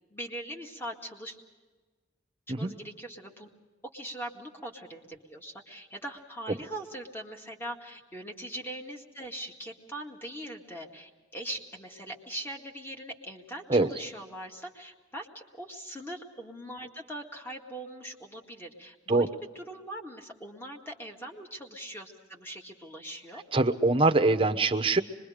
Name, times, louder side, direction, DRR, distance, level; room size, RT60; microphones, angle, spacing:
voice 1, 0.1-1.4 2.6-3.5 3.9-19.3 19.6-23.4, right 1 dB, 10° left, 2 dB, 1.9 m, -41 dB
voice 2, 23.5-25.0, right 2 dB, 30° right, 7 dB, 0.9 m, -23 dB
25.5 x 22.0 x 5.1 m, 1.3 s
head